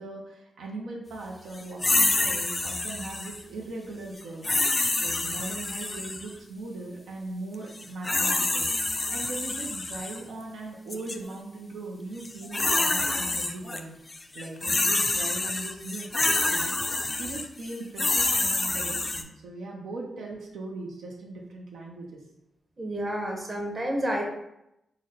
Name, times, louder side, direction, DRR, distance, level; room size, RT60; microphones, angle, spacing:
voice 1, 0.0-4.5 5.0-8.7 9.1-14.0 14.3-22.2, right 2 dB, 90° right, -1 dB, 0.5 m, -39 dB
sound 1, 1.8-3.4 4.4-6.3 7.7-10.2 10.9-11.2 12.2-13.8 14.1-19.2, left 2 dB, 30° left, 0.3 m, -27 dB
voice 2, 22.8-24.2, equal, 35° right, 1 dB, 0.8 m, -30 dB
4.0 x 2.1 x 3.8 m, 0.85 s
cardioid pair, 70°, 0 cm